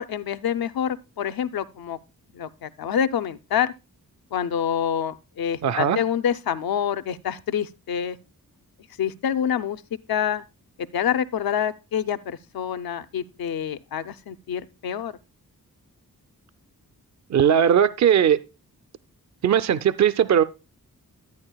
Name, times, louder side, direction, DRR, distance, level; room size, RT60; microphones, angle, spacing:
voice 1, 0.0-2.0 2.3-3.7 4.3-8.2 9.0-9.8 10.1-10.4 10.9-15.1, left 8 dB, 85° left, 0.6 m, -27 dB
voice 2, 5.6-6.0 17.3-18.4 19.4-20.4, right 8 dB, 50° right, 0.5 m, -19 dB
12.0 x 8.8 x 2.2 m
wide cardioid pair, 85°, 35 cm